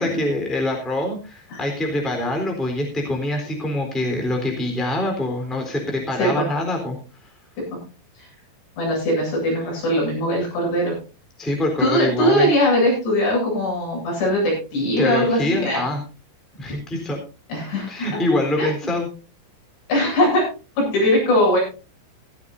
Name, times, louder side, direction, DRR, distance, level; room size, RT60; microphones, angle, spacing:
voice 1, 0.0-7.0 11.4-12.5 15.0-16.0 16.6-17.2 17.9-19.1, left 1 dB, ahead, 2 dB, 3.0 m, -24 dB
voice 2, 8.8-11.0 11.8-15.8 17.5-18.2 18.6-18.7 19.9-20.5 20.8-21.6, equal, 75° left, -3 dB, 10.5 m, -20 dB
16.0 x 15.5 x 2.7 m, 0.32 s
omnidirectional pair, 5.2 m